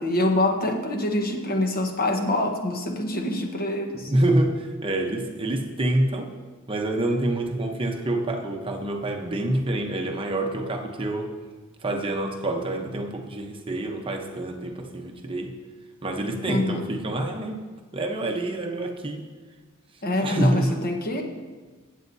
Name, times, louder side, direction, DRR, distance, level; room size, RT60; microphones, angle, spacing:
voice 1, 0.0-4.1 16.4-16.9 20.0-21.2, left 1 dB, 40° left, 3 dB, 1.1 m, -25 dB
voice 2, 4.1-6.3 6.7-11.4 11.8-15.5 16.0-17.6 17.9-19.2 20.2-20.8, right 1 dB, 25° right, 3 dB, 0.8 m, -26 dB
15.5 x 8.4 x 2.7 m, 1.3 s
head